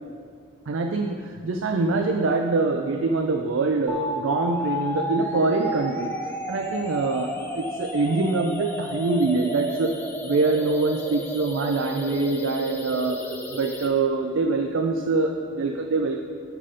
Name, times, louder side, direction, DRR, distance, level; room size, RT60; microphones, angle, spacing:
voice 1, 0.7-6.1 6.5-16.2, right 3 dB, 75° right, 4 dB, 0.4 m, -24 dB
sound 1, 3.9-13.9, left 1 dB, 10° left, 0.5 m, -32 dB
12.5 x 5.0 x 4.2 m, 2.1 s
head